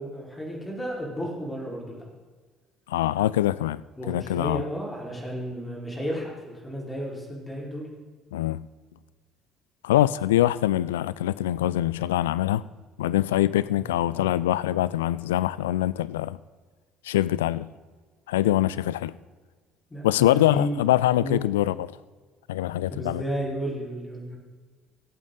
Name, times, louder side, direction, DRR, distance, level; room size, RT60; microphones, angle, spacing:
voice 1, 0.0-2.1 4.0-7.9 13.5-14.2 19.9-20.9 21.2-21.4 22.9-24.4, right 1 dB, 15° left, 4.6 m, -33 dB
voice 2, 2.9-3.8 4.1-4.6 8.3-8.7 9.8-12.7 13.0-16.4 17.0-17.7 18.3-19.2 20.0-21.9 22.5-23.2, left 13 dB, 70° left, 0.3 m, -24 dB
22.5 x 8.4 x 3.9 m
figure-of-eight pair, 55°, 0 cm